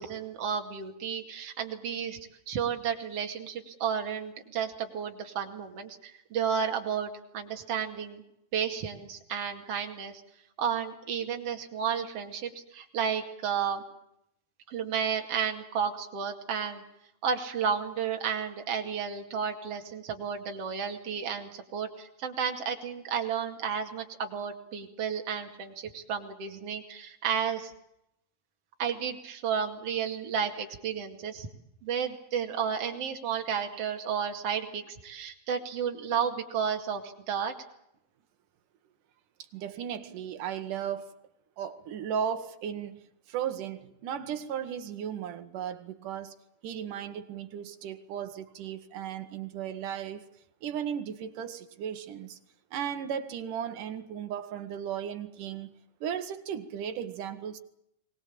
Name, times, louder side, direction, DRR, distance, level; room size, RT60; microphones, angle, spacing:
voice 1, 0.0-2.2 2.5-8.2 8.5-10.2 10.6-13.8 14.7-16.8 17.2-27.7 28.8-31.5 31.8-37.5, right 7 dB, 45° right, 3.0 m, -32 dB
voice 2, 39.5-41.1 41.6-43.0 43.3-46.4 46.6-50.3 50.6-52.4 52.7-55.7 56.0-57.6, right 8 dB, 65° right, 2.8 m, -35 dB
23.5 x 20.0 x 8.6 m
omnidirectional pair, 4.3 m